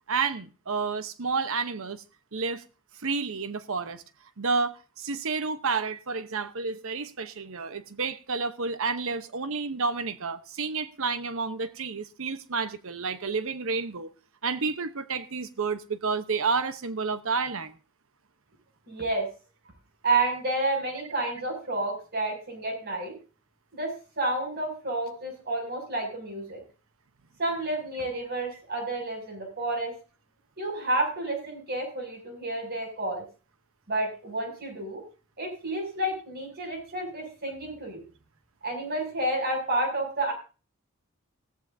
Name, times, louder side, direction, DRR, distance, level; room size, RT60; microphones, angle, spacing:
voice 1, 0.1-2.0 2.3-2.6 3.0-4.0 4.4-14.1 14.4-17.8, right 4 dB, 65° right, 0.9 m, -30 dB
voice 2, 18.9-19.3 20.0-23.2 23.7-26.6 27.4-29.9 30.6-33.2 33.9-35.0 35.4-38.0 38.6-40.3, right 2 dB, 50° right, 6.6 m, -30 dB
17.0 x 14.0 x 2.7 m
head